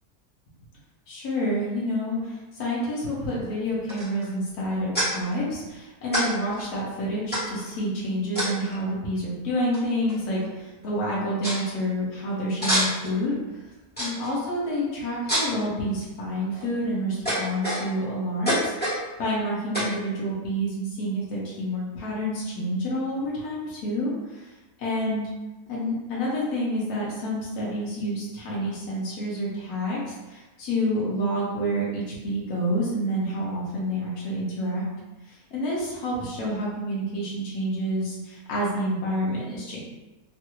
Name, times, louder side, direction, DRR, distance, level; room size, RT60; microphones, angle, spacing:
voice 1, 1.1-13.6 14.0-24.5 24.8-25.2 25.7-34.8 35.3-39.8, equal, 75° left, -6 dB, 1.3 m, -28 dB
sound 1, 3.9-4.3 4.9-5.1 6.1-6.3 6.5-6.6 7.3-7.7 8.4-8.8 9.7-9.8 10.1-10.5 10.8-10.9 11.4-11.6 12.6-13.2 14.0-14.3 15.3-15.6 16.3-16.7 17.3-18.1 18.5-19.0 19.7-20.0, equal, 5° left, 1.1 m, -26 dB
3.2 x 2.3 x 2.9 m, 1.1 s
omnidirectional pair, 1.6 m